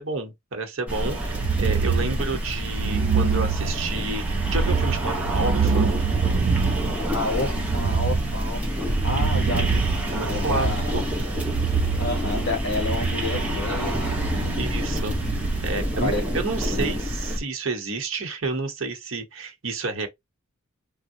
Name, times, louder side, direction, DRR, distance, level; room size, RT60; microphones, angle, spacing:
voice 1, 0.0-5.9 10.1-11.0 14.5-15.2 15.6-20.1, right 3 dB, 65° right, 1.0 m, -30 dB
sound 1, 0.9-17.4, equal, 5° right, 0.9 m, -28 dB
sound 2, 1.1-16.0, right 5 dB, 45° right, 0.3 m, -26 dB
voice 2, 7.1-8.6 9.0-11.1 12.0-14.6 15.8-16.2 16.7-16.9, left 2 dB, 55° left, 1.3 m, -30 dB
3.5 x 2.1 x 2.6 m
head